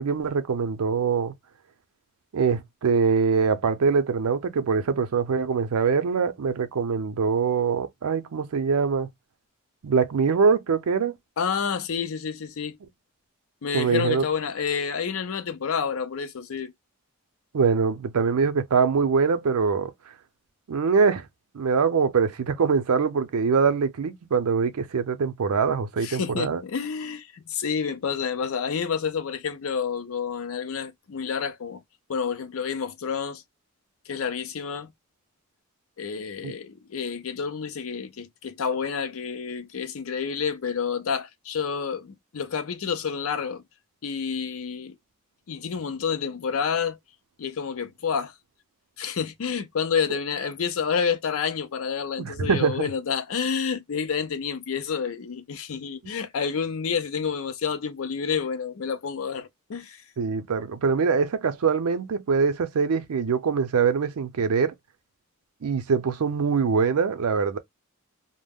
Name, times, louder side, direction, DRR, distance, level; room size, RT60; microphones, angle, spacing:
voice 1, 0.0-1.3 2.3-9.1 9.8-11.2 13.7-14.2 17.5-19.9 20.7-21.2 21.5-26.6 36.4-36.5 52.2-52.9 60.2-64.7 65.6-67.6, right 5 dB, 90° right, 0.5 m, -23 dB
voice 2, 11.4-12.8 13.6-16.7 26.0-31.8 32.1-33.4 34.1-34.9 36.0-43.6 44.0-45.0 45.5-47.0 47.4-48.3 49.0-60.0, left 6 dB, 70° left, 0.5 m, -29 dB
2.2 x 2.0 x 3.4 m
head